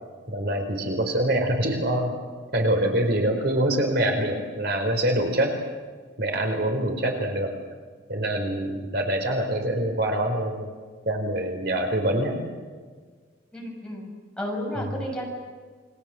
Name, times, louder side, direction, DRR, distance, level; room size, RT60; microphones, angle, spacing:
voice 1, 0.3-2.1 2.5-5.6 6.2-7.5 8.1-10.7 11.1-12.4 14.9-15.0, right 1 dB, 55° right, 3 dB, 4.6 m, -25 dB
voice 2, 13.5-14.1 14.4-15.3, equal, 5° left, -2 dB, 7.0 m, -32 dB
29.5 x 23.5 x 7.8 m, 1.5 s
head